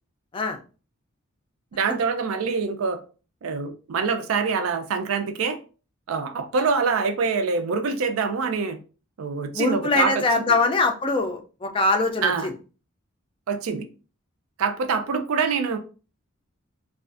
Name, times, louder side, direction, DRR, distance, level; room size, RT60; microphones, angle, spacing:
voice 1, 1.7-3.0 3.4-5.6 6.1-8.8 9.2-10.5 12.2-12.5 13.5-13.9 14.6-15.8, right 5 dB, 90° right, 0.4 m, -25 dB
voice 2, 9.5-12.5, left 3 dB, 25° left, 0.3 m, -23 dB
2.4 x 2.3 x 2.4 m
head